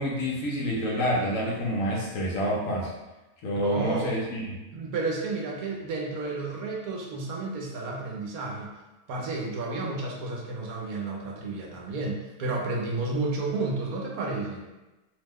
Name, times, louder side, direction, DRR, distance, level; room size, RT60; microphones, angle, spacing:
voice 1, 0.0-2.9 3.4-4.5, equal, 65° left, -3 dB, 0.9 m, -28 dB
voice 2, 3.6-4.2 4.7-8.7 9.1-14.7, right 3 dB, 75° right, -2 dB, 1.1 m, -31 dB
2.8 x 2.1 x 3.4 m, 1.1 s
omnidirectional pair, 1.6 m